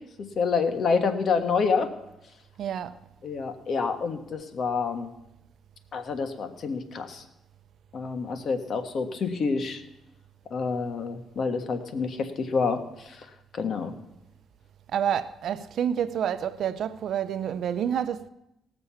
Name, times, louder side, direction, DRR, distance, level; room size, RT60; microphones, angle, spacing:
voice 1, 0.4-1.9 3.2-5.1 5.9-7.2 7.9-9.8 10.5-12.8 13.5-13.9, left 5 dB, 55° left, 1.4 m, -27 dB
voice 2, 2.6-3.0 14.9-18.3, right 9 dB, 65° right, 0.6 m, -28 dB
19.0 x 6.9 x 5.7 m
cardioid pair, 90°, 0 cm